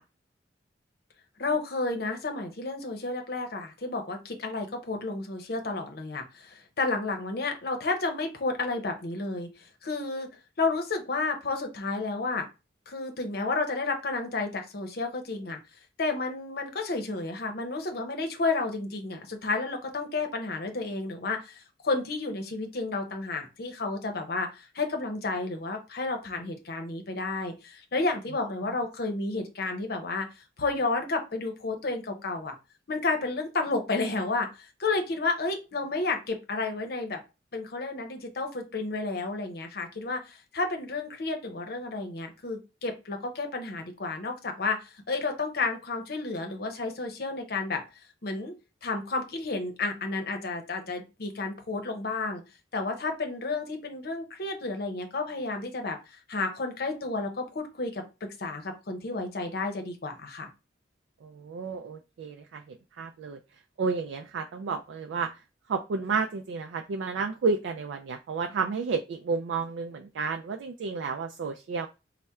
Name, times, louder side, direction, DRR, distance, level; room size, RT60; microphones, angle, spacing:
voice 1, 1.4-9.5 9.8-10.3 10.6-12.5 12.9-15.6 16.0-30.3 30.6-32.5 32.9-37.2 37.5-47.8 48.2-48.5 48.8-52.4 52.7-56.0 56.3-58.0 58.4-60.5, left 3 dB, 55° left, 4 dB, 0.7 m, -31 dB
voice 2, 61.2-63.4 63.8-65.3 65.7-71.9, right 4 dB, 85° right, 5 dB, 0.3 m, -31 dB
4.2 x 2.1 x 3.5 m, 0.28 s
head